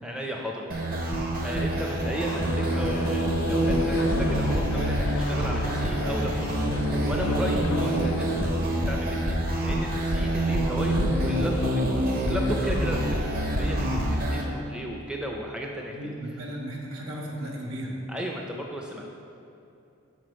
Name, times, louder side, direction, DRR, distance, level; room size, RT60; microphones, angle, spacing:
voice 1, 0.0-8.3 8.9-16.1 18.1-19.0, equal, 5° right, 0 dB, 0.4 m, -35 dB
sound 1, 0.7-14.4, right 1 dB, 45° right, 0.7 m, -26 dB
sound 2, 2.3-8.5, left 2 dB, 80° left, 0.6 m, -36 dB
voice 2, 15.9-18.0, right 1 dB, 75° right, -1 dB, 1.3 m, -35 dB
6.1 x 4.6 x 6.2 m, 2.8 s
head